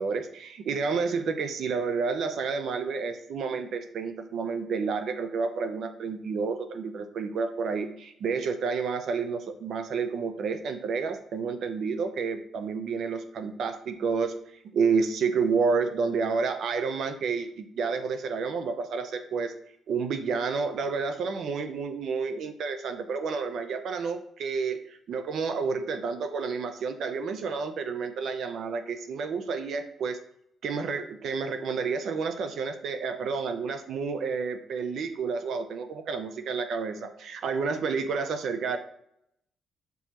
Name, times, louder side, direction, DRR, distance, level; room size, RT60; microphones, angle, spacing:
voice 1, 0.0-14.3 14.6-19.5 19.9-30.2 30.6-38.8, right 5 dB, 70° right, 9 dB, 0.6 m, -30 dB
8.1 x 4.6 x 3.0 m, 0.74 s
cardioid pair, 110°, 0 cm